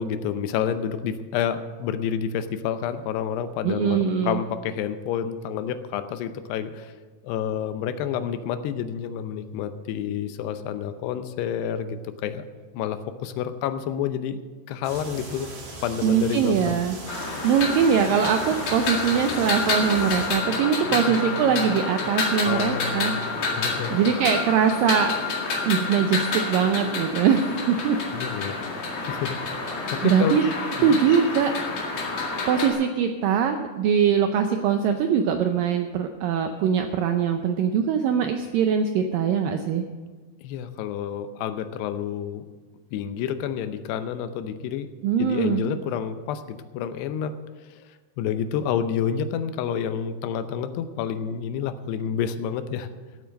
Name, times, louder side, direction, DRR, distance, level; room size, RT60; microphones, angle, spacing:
voice 1, 0.0-6.9 7.2-12.4 12.7-14.4 14.7-15.5 15.8-16.8 20.9-21.2 22.4-24.1 28.1-28.6 29.0-29.6 29.9-30.4 30.8-31.0 40.4-42.5 42.9-44.9 45.2-47.4 47.7-52.9, left 8 dB, 80° left, 11 dB, 2.8 m, -29 dB
voice 2, 3.6-4.4 16.0-17.0 17.4-23.1 23.9-25.1 25.7-28.0 30.0-30.4 30.8-31.6 32.5-39.8 45.0-45.6, right 7 dB, 85° right, 6 dB, 2.0 m, -22 dB
sound 1, 14.8-20.3, right 2 dB, 55° right, 4.5 m, -39 dB
sound 2, 17.1-32.7, left 3 dB, 45° left, 2.8 m, -29 dB
15.0 x 8.6 x 6.4 m, 1.4 s
omnidirectional pair, 4.8 m